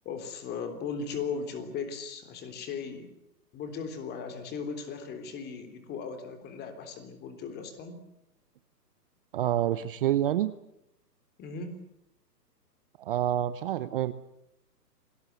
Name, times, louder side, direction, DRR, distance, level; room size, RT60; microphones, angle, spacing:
voice 1, 0.1-3.1 3.5-8.0 11.4-11.8, left 5 dB, 20° left, 8 dB, 3.5 m, -37 dB
voice 2, 9.3-10.5 13.0-14.1, right 12 dB, 35° right, 14 dB, 0.8 m, -27 dB
27.5 x 18.5 x 8.3 m, 0.84 s
hypercardioid pair, 140°, 49 cm